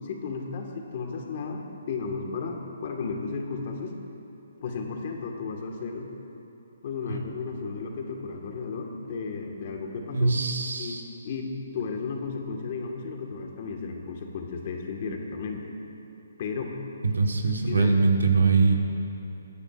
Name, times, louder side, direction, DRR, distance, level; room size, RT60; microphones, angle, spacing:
voice 1, 0.0-3.9 4.6-6.1 6.8-10.3 10.8-15.7 16.4-16.7 17.7-17.9, left 4 dB, 45° left, 2 dB, 1.6 m, -34 dB
voice 2, 10.1-11.0 17.0-18.7, right 4 dB, 90° right, 3 dB, 1.4 m, -22 dB
21.0 x 9.9 x 2.5 m, 2.9 s
hypercardioid pair, 150°, 0 cm